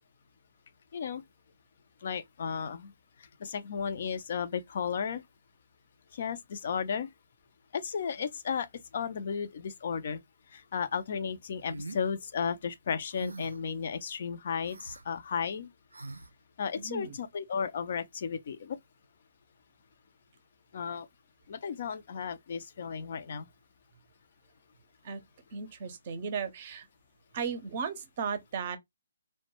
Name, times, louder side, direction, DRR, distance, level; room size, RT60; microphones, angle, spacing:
voice 1, 2.0-2.9 3.4-5.2 6.1-7.1 7.7-8.7 8.9-10.2 10.5-15.7 16.6-18.8 20.7-21.1 21.5-23.5, left 6 dB, 50° left, 0.4 m, -34 dB
sound 1, 11.7-12.0 13.1-13.7 14.6-15.0 15.9-16.3, right 2 dB, 90° right, 0.4 m, -43 dB
voice 2, 16.8-17.2 25.0-25.2 25.5-26.8 27.3-28.8, right 6 dB, 40° right, 0.6 m, -35 dB
2.1 x 2.1 x 3.0 m
figure-of-eight pair, 145°, 0 cm